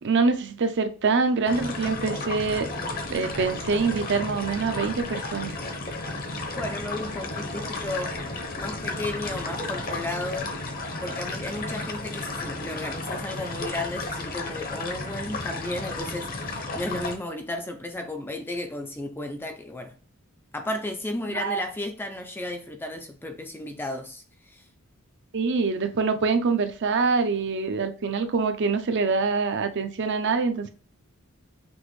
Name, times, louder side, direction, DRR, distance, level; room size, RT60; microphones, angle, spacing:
voice 1, 0.0-2.7 3.1-5.5 21.3-21.6 25.3-30.7, right 4 dB, 55° right, 0.5 m, -25 dB
sound 1, 1.5-17.2, left 2 dB, 40° left, 0.8 m, -33 dB
voice 2, 6.6-8.2 8.6-10.5 11.0-19.9 20.5-24.6, left 1 dB, 10° left, 0.4 m, -34 dB
6.1 x 2.5 x 3.1 m
head